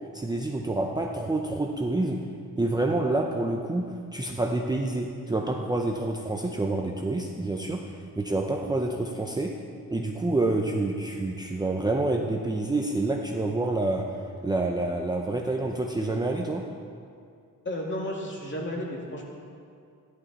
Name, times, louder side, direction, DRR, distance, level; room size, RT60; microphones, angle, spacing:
voice 1, 0.0-2.2 2.6-9.5 9.9-14.0 14.4-16.6, right 2 dB, 10° right, 0 dB, 0.6 m, -28 dB
voice 2, 17.6-19.3, left 1 dB, 35° left, -2 dB, 2.3 m, -33 dB
14.0 x 11.0 x 4.2 m, 2.3 s
wide cardioid pair, 130°, 35 cm